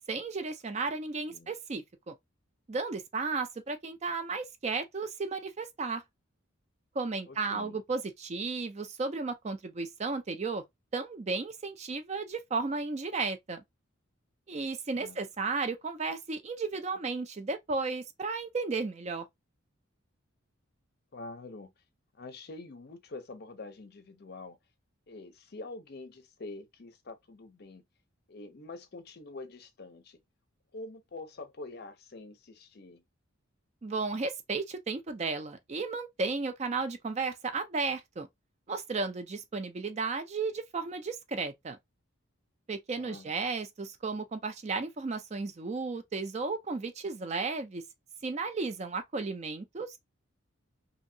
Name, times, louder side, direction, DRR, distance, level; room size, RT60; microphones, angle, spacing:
voice 1, 0.1-2.1 2.7-6.0 6.9-10.6 10.9-13.6 14.5-19.2 33.8-38.3 38.7-41.8 42.7-47.8 48.2-50.0, right 4 dB, 30° right, 0.4 m, -34 dB
voice 2, 7.3-7.8 14.9-15.2 21.1-21.7 22.1-24.6 25.1-27.8 28.3-30.2 30.7-33.0 43.0-43.3, left 2 dB, 50° left, 0.5 m, -45 dB
2.8 x 2.6 x 2.6 m
head